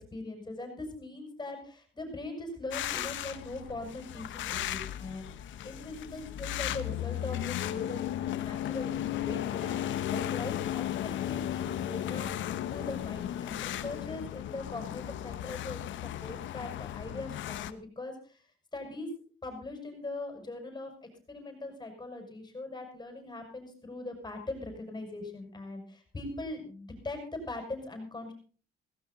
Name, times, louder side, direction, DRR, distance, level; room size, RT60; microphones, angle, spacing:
voice 1, 0.1-18.4 18.7-19.1 19.4-20.9 21.3-28.3, left 2 dB, 20° left, 4 dB, 6.0 m, -41 dB
sound 1, 2.7-17.7, left 12 dB, 65° left, 1.1 m, -35 dB
17.0 x 15.0 x 4.1 m, 0.41 s
cardioid pair, 100°, 21 cm